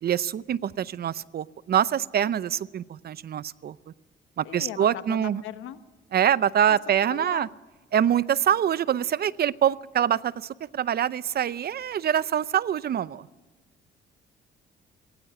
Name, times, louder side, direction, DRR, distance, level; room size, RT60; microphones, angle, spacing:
voice 1, 0.0-3.8 4.4-5.4 6.1-7.5 7.9-13.3, right 9 dB, 55° right, 19 dB, 0.6 m, -25 dB
voice 2, 4.4-5.8 6.7-7.5, left 12 dB, 85° left, 12 dB, 1.1 m, -39 dB
18.0 x 17.5 x 9.2 m, 1.3 s
cardioid pair, 90°, 20 cm